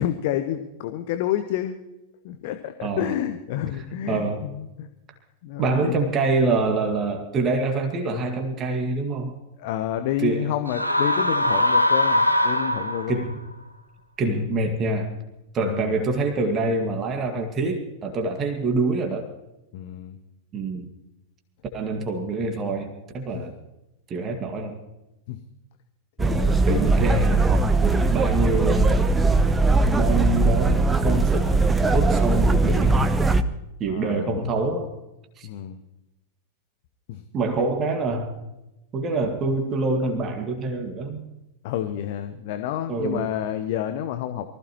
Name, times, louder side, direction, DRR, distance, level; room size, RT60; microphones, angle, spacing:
voice 1, 0.0-1.8 2.2-4.9 5.4-6.0 9.6-13.3 14.2-14.5 15.6-16.0 19.7-20.2 23.3-23.4 25.3-25.4 26.2-26.7 33.9-34.4 35.4-35.8 37.1-37.2 41.6-44.5, left 11 dB, 50° left, 9 dB, 1.0 m, -29 dB
voice 2, 2.8-3.1 4.1-4.4 5.6-9.3 10.2-10.5 13.1-13.4 14.2-15.1 15.5-19.3 20.5-20.9 21.7-23.6 24.1-24.8 26.7-29.1 30.0-31.5 31.9-33.0 33.8-34.9 35.4-35.5 37.3-38.3 38.9-41.3 42.9-43.3, right 3 dB, 30° right, 4 dB, 1.9 m, -25 dB
sound 1, 10.7-13.3, left 1 dB, 90° left, 1.1 m, -21 dB
sound 2, 26.2-33.4, right 2 dB, 10° right, 0.9 m, -20 dB
23.5 x 15.0 x 3.1 m, 0.94 s
figure-of-eight pair, 90°, 0 cm